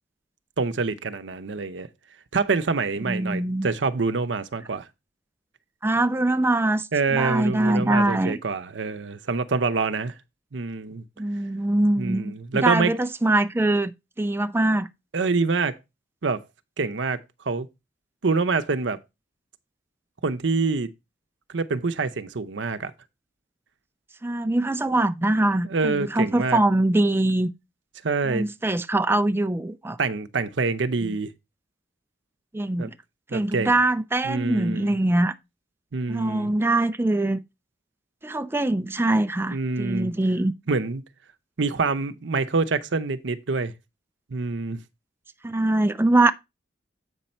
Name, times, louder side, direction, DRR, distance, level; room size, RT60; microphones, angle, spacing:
voice 1, 0.6-1.9 2.3-4.9 6.9-10.1 10.5-11.0 12.0-12.9 15.1-15.8 16.2-16.4 16.8-17.2 17.5-17.7 18.2-19.0 20.2-20.9 21.5-22.9 25.7-26.6 28.0-28.4 30.0-31.3 32.8-32.9 33.3-33.8 34.2-35.0 35.9-36.5 39.5-40.1 40.7-41.0 41.6-43.7 44.3-44.8, right 4 dB, 85° right, 0.7 m, -26 dB
voice 2, 3.1-3.7 5.8-8.4 11.2-13.9 14.2-14.9 24.2-27.5 28.2-30.0 31.0-31.2 32.5-32.9 33.3-35.4 36.1-37.4 38.2-40.5 45.4-46.3, right 2 dB, 15° right, 0.5 m, -23 dB
8.1 x 5.4 x 4.4 m
head